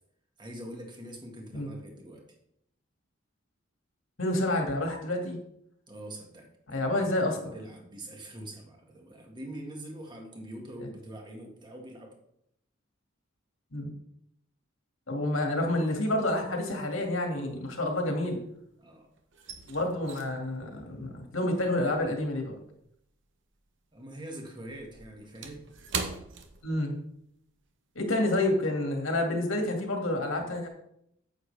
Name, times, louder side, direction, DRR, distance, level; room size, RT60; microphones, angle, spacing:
voice 1, 0.4-2.2 5.9-7.1 7.4-12.1 18.8-19.1 23.9-25.6, right 1 dB, 25° right, 1 dB, 1.9 m, -44 dB
voice 2, 4.2-5.4 6.7-7.4 10.8-10.9 13.7-13.9 15.1-18.4 19.7-22.6 26.6-27.0 28.0-30.7, left 1 dB, 90° left, 2 dB, 2.2 m, -29 dB
sound 1, 15.9-16.5 16.7-18.7 19.0-23.7 24.0-27.3 27.6-27.8 28.2-28.5, right 5 dB, 65° right, 1.1 m, -42 dB
9.3 x 8.4 x 3.4 m, 0.73 s
head